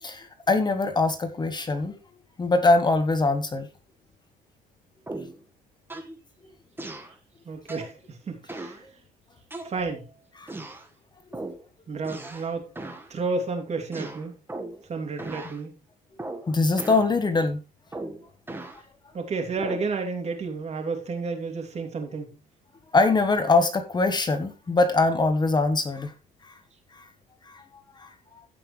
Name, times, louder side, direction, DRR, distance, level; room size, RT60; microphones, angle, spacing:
voice 1, 0.0-2.0 2.4-3.7 10.4-10.5 16.5-17.6 22.9-26.1 27.0-27.1 27.5-27.6 28.0-28.1, left 3 dB, 25° left, 9 dB, 1.2 m, -23 dB
sound 1, 5.1-5.4 5.9-6.2 6.8-7.1 7.7-8.0 8.5-8.8 9.5-10.0 10.5-10.9 11.3-11.6 12.0-12.5 12.8-13.1 13.9-14.8 15.2-15.6 16.2-16.5 16.8-17.1 17.9-18.8 19.6-19.9, right 2 dB, 15° right, 1.6 m, -37 dB
voice 2, 7.4-8.9 9.6-10.0 11.9-12.7 13.1-14.3 14.9-15.7 19.1-22.3, right 4 dB, 40° right, 4 dB, 2.9 m, -31 dB
15.5 x 5.8 x 3.3 m, 0.29 s
cardioid pair, 110°, 17 cm